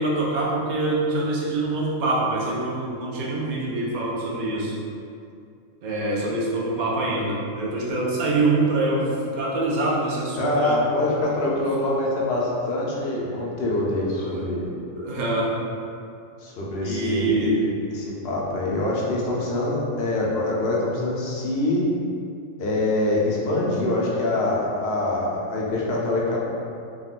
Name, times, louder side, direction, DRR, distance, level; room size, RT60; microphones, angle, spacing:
voice 1, 0.0-4.8 5.8-10.8 14.1-14.4 15.0-15.5 16.8-17.7, right 2 dB, 55° right, -4 dB, 0.5 m, -25 dB
voice 2, 10.4-14.7 16.4-17.5 17.9-21.8 22.6-26.4, left 2 dB, 60° left, -4 dB, 0.8 m, -24 dB
3.6 x 2.3 x 2.4 m, 2.5 s
omnidirectional pair, 1.3 m